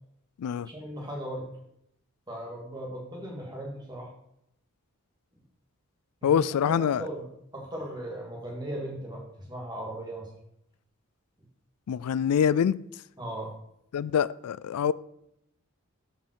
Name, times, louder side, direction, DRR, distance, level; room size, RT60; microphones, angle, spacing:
voice 1, 0.6-1.5 2.3-4.1 6.2-10.3 13.2-13.5, right 1 dB, 20° right, 2.1 m, -37 dB
voice 2, 6.2-7.0 11.9-12.8 13.9-14.9, left 8 dB, 90° left, 0.3 m, -25 dB
12.5 x 5.4 x 4.6 m
head